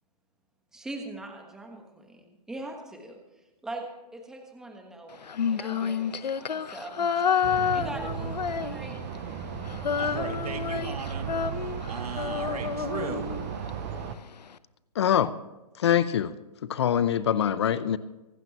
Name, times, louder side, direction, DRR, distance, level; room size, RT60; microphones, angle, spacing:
voice 1, 0.7-3.2 3.6-7.1 7.7-9.0, right 2 dB, 5° right, 1.3 m, -41 dB
Female singing, 5.2-9.2 9.4-13.7, left 7 dB, 90° left, 0.9 m, -29 dB
sound 1, 7.4-14.2, right 7 dB, 20° right, 0.6 m, -35 dB
voice 2, 10.0-13.3, right 5 dB, 65° right, 2.4 m, -37 dB
voice 3, 15.0-15.3 15.8-16.3 16.7-18.0, left 9 dB, 40° left, 0.7 m, -24 dB
25.0 x 12.0 x 3.0 m
hypercardioid pair, 160°, 21 cm